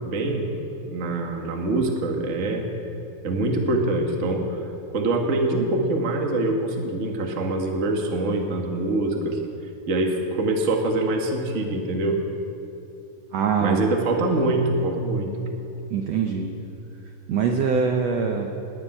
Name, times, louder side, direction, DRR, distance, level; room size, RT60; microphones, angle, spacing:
voice 1, 0.0-0.5 0.8-2.7 3.2-4.6 4.9-9.4 9.9-12.2 13.6-15.3, right 2 dB, 50° right, 2 dB, 0.9 m, -24 dB
voice 2, 13.3-13.8 15.9-16.5 17.3-18.5, right 6 dB, 80° right, 3 dB, 1.5 m, -23 dB
18.0 x 7.4 x 9.9 m, 2.9 s
omnidirectional pair, 4.2 m